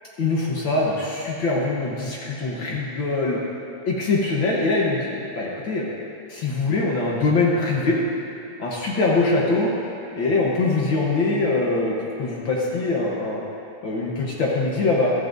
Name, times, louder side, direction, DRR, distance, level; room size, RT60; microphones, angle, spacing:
voice 1, 0.2-3.4 3.9-5.9 6.3-8.0 8.6-9.7 10.2-13.4 13.8-15.1, left 3 dB, 70° left, -3 dB, 1.1 m, -23 dB
15.5 x 12.5 x 2.6 m, 2.7 s
omnidirectional pair, 3.7 m